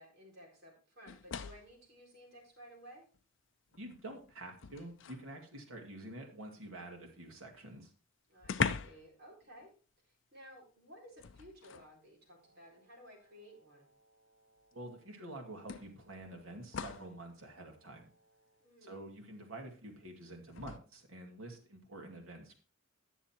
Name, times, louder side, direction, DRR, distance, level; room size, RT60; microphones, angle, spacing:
voice 1, 0.0-3.0 8.3-9.7 10.0-13.9 18.6-19.0, equal, 50° right, -2 dB, 4.3 m, -56 dB
sound 1, 1.1-1.8 3.1-3.2 3.7-5.3 7.4-7.5 7.7-7.8 8.4-9.1 9.4-9.7 11.2-11.9 13.1-13.2 14.7-14.8 15.7-17.2 20.5-20.8, left 6 dB, 60° left, 0.6 m, -40 dB
voice 2, 3.7-7.9 14.7-18.1 18.8-22.5, right 1 dB, 80° right, 2 dB, 2.4 m, -48 dB
Wind instrument woodwind instrument, 12.3-18.7, right 2 dB, 65° right, 5.7 m, -71 dB
10.5 x 7.1 x 4.4 m, 0.37 s
head